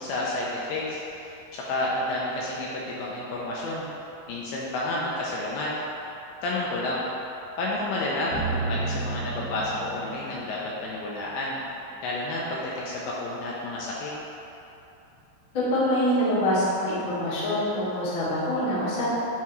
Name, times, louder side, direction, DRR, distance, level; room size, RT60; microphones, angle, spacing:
voice 1, 0.0-3.8 4.3-5.7 6.4-7.0 7.6-11.6 12.0-14.1, left 2 dB, 85° left, -5 dB, 2.3 m, -30 dB
sound 1, 8.3-10.5, right 3 dB, 70° right, 2.9 m, -31 dB
voice 2, 15.5-19.0, equal, 60° left, -10 dB, 1.3 m, -25 dB
10.0 x 3.6 x 3.1 m, 2.9 s
omnidirectional pair, 4.8 m